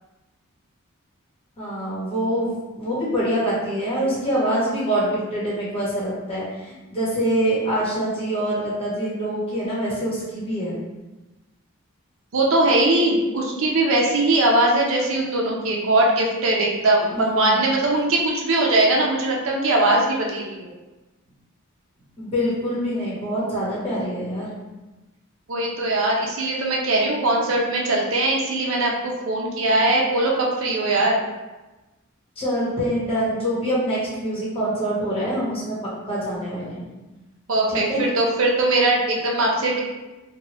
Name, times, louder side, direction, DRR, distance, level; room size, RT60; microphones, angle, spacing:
voice 1, 1.6-10.8 17.1-17.7 22.2-24.5 32.4-35.8 36.1-36.8 37.7-38.1, right 1 dB, 30° left, -7 dB, 1.0 m, -25 dB
voice 2, 12.3-20.7 25.5-31.3 37.5-39.8, right 2 dB, 70° right, -2 dB, 0.6 m, -20 dB
3.0 x 2.2 x 2.9 m, 1.1 s
head